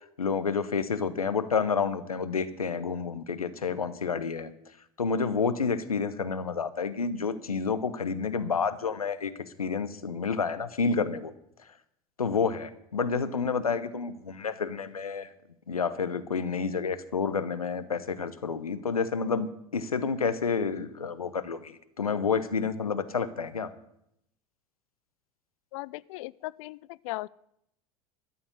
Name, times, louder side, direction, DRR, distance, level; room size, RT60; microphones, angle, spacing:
voice 1, 0.2-4.5 5.0-9.3 9.6-11.3 12.2-15.3 15.7-23.7, left 5 dB, 90° left, 13 dB, 0.9 m, -29 dB
voice 2, 25.7-27.3, left 20 dB, 60° left, 22 dB, 0.4 m, -38 dB
13.0 x 7.0 x 9.6 m, 0.77 s
hypercardioid pair, 75°, 18 cm